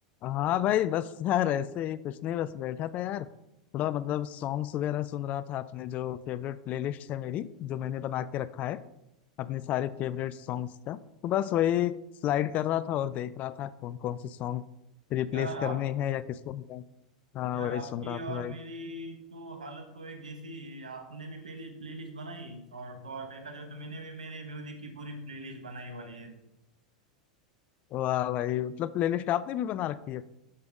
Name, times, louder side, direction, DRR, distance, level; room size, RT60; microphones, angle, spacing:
voice 1, 0.2-3.3 3.7-8.8 9.4-12.0 12.2-14.6 15.1-16.8 17.3-18.5 27.9-30.3, left 12 dB, 40° left, 17 dB, 0.3 m, -31 dB
voice 2, 15.3-15.8 17.5-26.4, right 2 dB, 85° right, 6 dB, 1.0 m, -41 dB
12.0 x 5.2 x 2.3 m, 0.88 s
hypercardioid pair, 95°, 4 cm